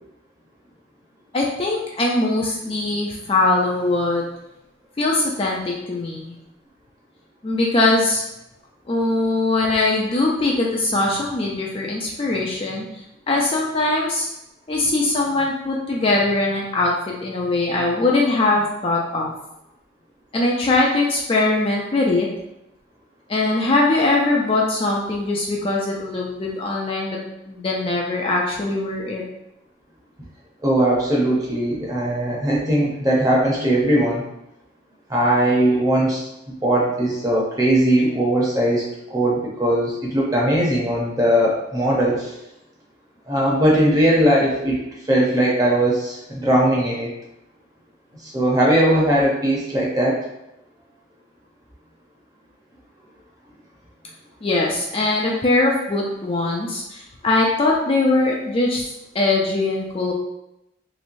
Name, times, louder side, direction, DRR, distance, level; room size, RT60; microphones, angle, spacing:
voice 1, 1.3-4.2 5.0-6.3 7.4-8.2 8.9-12.9 13.3-14.3 14.7-19.3 20.3-22.3 23.3-27.2 27.5-29.2 54.4-58.8 59.1-60.1, left 2 dB, 30° left, -2 dB, 0.4 m, -21 dB
voice 2, 30.6-34.2 35.1-42.3 43.3-44.8 45.1-47.1 48.2-50.2, right 1 dB, 20° right, -4 dB, 0.8 m, -19 dB
3.1 x 3.1 x 2.6 m, 0.86 s
head